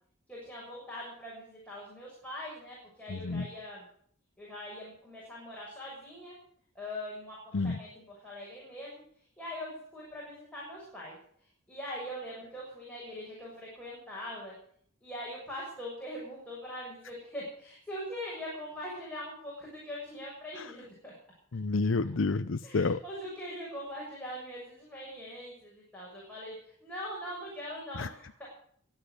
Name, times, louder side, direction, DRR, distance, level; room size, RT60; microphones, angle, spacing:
voice 1, 0.3-3.9 4.4-6.4 6.8-9.0 9.4-11.2 11.7-14.6 15.0-21.1 22.6-26.6 26.8-28.5, equal, 5° left, -5 dB, 7.0 m, -42 dB
voice 2, 3.1-3.5 7.5-7.8 20.6-20.7 21.5-23.0 28.0-28.1, left 3 dB, 80° left, 10 dB, 0.7 m, -29 dB
23.0 x 9.1 x 6.6 m, 0.62 s
head